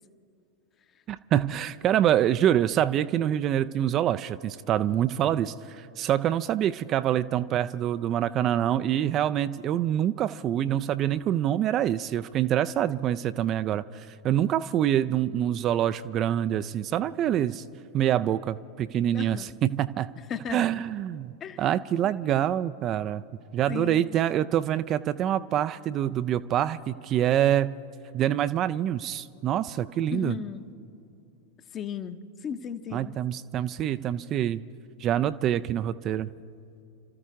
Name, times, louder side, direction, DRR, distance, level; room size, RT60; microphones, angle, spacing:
voice 1, 1.1-17.6 17.9-20.1 20.5-21.3 21.6-23.2 23.5-27.7 28.1-30.3 32.9-34.6 35.0-36.3, right 11 dB, 30° right, 13 dB, 0.4 m, -26 dB
voice 2, 19.1-19.5 20.3-20.8 21.4-21.6 22.0-22.5 23.7-24.2 30.1-30.7 31.7-33.2, left 7 dB, 25° left, 11 dB, 0.9 m, -36 dB
29.5 x 13.5 x 3.6 m, 2.6 s
figure-of-eight pair, 90°, 0 cm